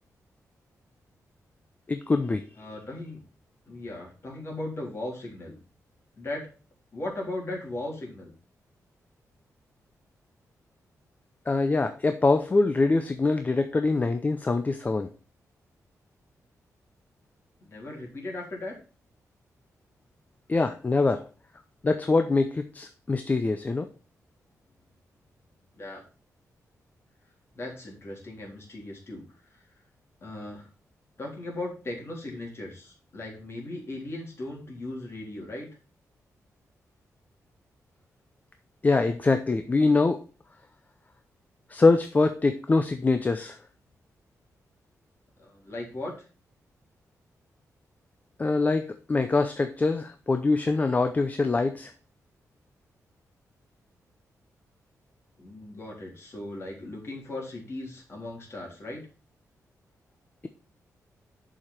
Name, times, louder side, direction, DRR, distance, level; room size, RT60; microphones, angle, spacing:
voice 1, 1.9-2.5 11.5-15.1 20.5-21.2 21.8-23.9 38.8-40.2 41.7-43.6 48.4-51.9, left 3 dB, 25° left, 8 dB, 0.6 m, -24 dB
voice 2, 2.6-3.2 3.7-5.6 6.2-6.5 6.9-8.3 17.6-18.7 25.7-26.0 27.5-29.2 30.2-30.7 31.2-35.7 45.4-46.1 55.4-59.1, left 2 dB, 45° left, -1 dB, 3.6 m, -37 dB
7.1 x 5.0 x 5.9 m, 0.36 s
cardioid pair, 110°, 6 cm